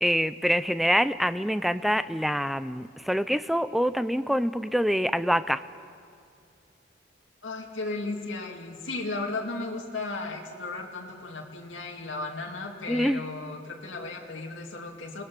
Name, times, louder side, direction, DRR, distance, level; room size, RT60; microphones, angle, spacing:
voice 1, 0.0-5.6 12.9-13.2, equal, ahead, 13 dB, 0.5 m, -25 dB
voice 2, 7.4-15.2, left 3 dB, 90° left, 0 dB, 2.2 m, -35 dB
29.0 x 20.0 x 6.0 m, 2.3 s
head